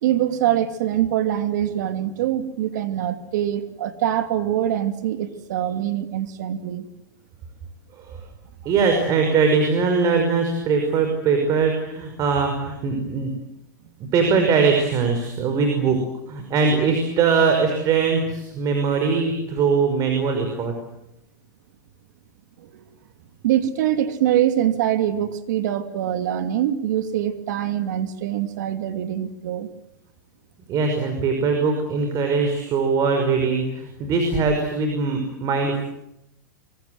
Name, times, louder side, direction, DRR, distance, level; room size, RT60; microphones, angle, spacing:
voice 1, 0.0-6.9 22.6-22.8 23.4-29.7, right 11 dB, 65° right, 8 dB, 2.9 m, -24 dB
voice 2, 8.7-13.3 14.1-16.0 16.3-20.7 30.7-35.8, right 5 dB, 35° right, 5 dB, 5.5 m, -21 dB
25.5 x 24.5 x 8.0 m, 0.83 s
hypercardioid pair, 130°, 10 cm